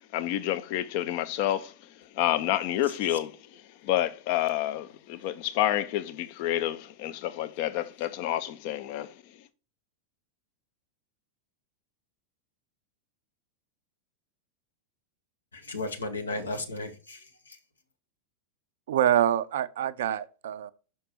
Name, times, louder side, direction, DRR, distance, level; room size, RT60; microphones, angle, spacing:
voice 1, 0.1-1.7 2.1-3.4 3.8-9.1, left 12 dB, 45° left, 0.6 m, -29 dB
voice 2, 15.5-17.6, left 2 dB, 75° left, 1.1 m, -35 dB
voice 3, 18.9-20.7, right 11 dB, 60° right, 0.4 m, -25 dB
5.8 x 4.6 x 4.5 m
figure-of-eight pair, 90°, 0 cm